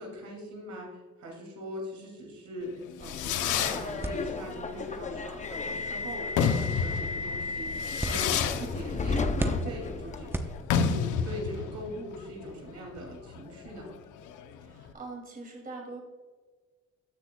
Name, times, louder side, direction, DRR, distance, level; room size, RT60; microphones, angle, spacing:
voice 1, 0.0-13.9, equal, 65° right, 0 dB, 2.6 m, -41 dB
Fireworks, 2.7-14.9, left 7 dB, 90° left, 0.7 m, -32 dB
Subway metro underground, 3.0-10.6, left 3 dB, 25° left, 0.7 m, -34 dB
sound 1, 4.0-11.1, right 1 dB, 10° right, 0.8 m, -39 dB
voice 2, 14.6-16.0, right 3 dB, 30° right, 0 dB, 2.6 m, -42 dB
15.0 x 6.1 x 2.3 m, 1.4 s
cardioid pair, 90°, 30 cm